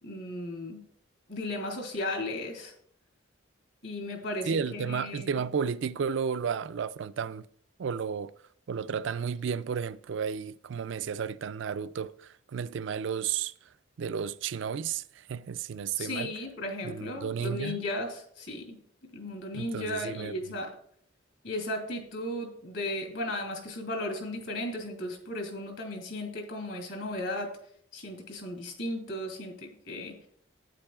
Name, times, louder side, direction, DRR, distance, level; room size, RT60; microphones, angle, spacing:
voice 1, 0.0-0.8 1.3-2.7 3.8-5.4 16.0-18.8 19.1-20.7 21.4-27.5 27.9-30.1, left 1 dB, 65° left, 2.8 m, -35 dB
voice 2, 4.5-7.4 7.8-8.3 8.7-13.5 14.0-16.3 16.8-17.8 19.5-20.3, right 6 dB, 65° right, 0.4 m, -33 dB
11.5 x 9.4 x 2.4 m
head